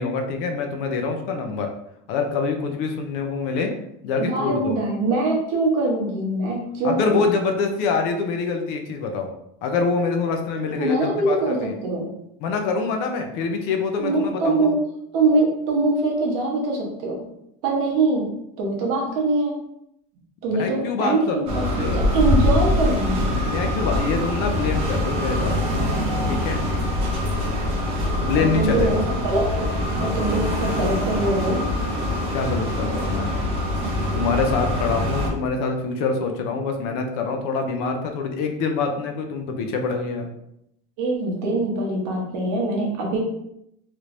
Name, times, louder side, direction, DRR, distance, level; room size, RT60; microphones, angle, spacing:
voice 1, 0.0-1.7 2.1-3.7 4.0-4.7 6.8-9.3 9.6-11.7 12.4-14.7 20.5-22.1 23.3-25.6 26.3-26.6 28.2-29.1 32.3-33.4 34.1-40.3, left 4 dB, 55° left, 4 dB, 0.5 m, -25 dB
voice 2, 4.2-7.3 10.7-12.2 14.0-14.8 15.1-17.2 17.6-19.6 20.4-23.3 28.3-29.7 30.0-31.6 41.0-43.3, right 2 dB, 65° right, -1 dB, 1.1 m, -23 dB
sound 1, 21.5-35.3, left 1 dB, 30° right, 0.6 m, -24 dB
3.2 x 3.0 x 2.5 m, 0.78 s
cardioid pair, 180°, 20 cm